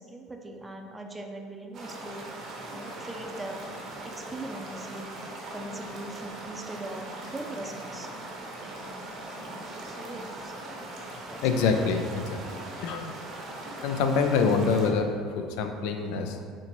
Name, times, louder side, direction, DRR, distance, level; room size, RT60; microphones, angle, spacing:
voice 1, 0.0-2.2 2.7-3.6 4.0-5.0 5.5-8.1 9.7-10.5 11.3-11.4 15.8-16.4, right 2 dB, 20° right, 3 dB, 0.5 m, -41 dB
sound 1, 1.7-14.9, right 2 dB, 55° right, 0.8 m, -40 dB
voice 2, 11.4-13.1 13.8-16.4, left 5 dB, 75° left, 6 dB, 0.3 m, -26 dB
4.2 x 2.9 x 3.0 m, 2.1 s
hypercardioid pair, 70°, 0 cm